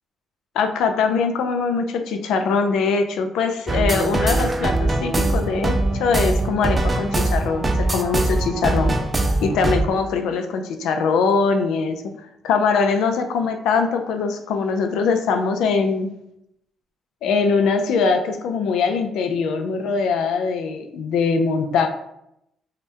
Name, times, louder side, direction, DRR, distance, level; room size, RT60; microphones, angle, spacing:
voice 1, 0.6-9.0 9.4-12.0 12.4-16.1 17.2-21.9, left 5 dB, 85° left, 6 dB, 0.3 m, -22 dB
sound 1, 3.7-9.8, right 2 dB, 25° right, 0.3 m, -22 dB
2.7 x 2.1 x 3.3 m, 0.80 s
cardioid pair, 90°, 0 cm